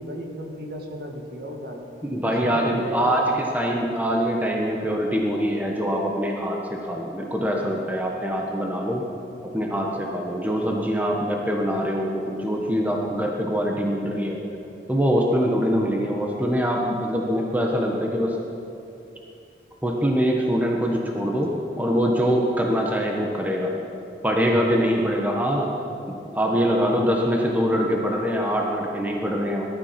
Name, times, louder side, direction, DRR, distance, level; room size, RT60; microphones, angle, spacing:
voice 1, 0.0-1.8 2.2-3.4, equal, 55° right, 2 dB, 1.9 m, -34 dB
voice 2, 2.0-9.0 9.5-14.4 14.9-18.4 19.8-23.7 24.2-25.7 26.1-29.7, equal, 10° right, 0 dB, 1.3 m, -24 dB
19.0 x 12.0 x 5.9 m, 2.7 s
head